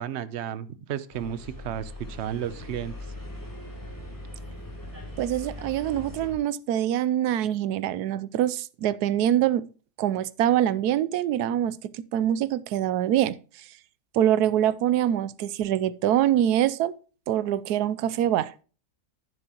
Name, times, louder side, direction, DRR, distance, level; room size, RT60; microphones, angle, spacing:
voice 1, 0.0-2.9, right 10 dB, 55° right, 0.9 m, -33 dB
sound 1, 1.1-6.4, left 1 dB, 10° left, 2.7 m, -40 dB
voice 2, 5.2-9.7 10.0-13.4 14.1-17.0 17.3-18.5, right 11 dB, 80° right, 1.2 m, -24 dB
10.5 x 9.8 x 2.9 m
omnidirectional pair, 1.7 m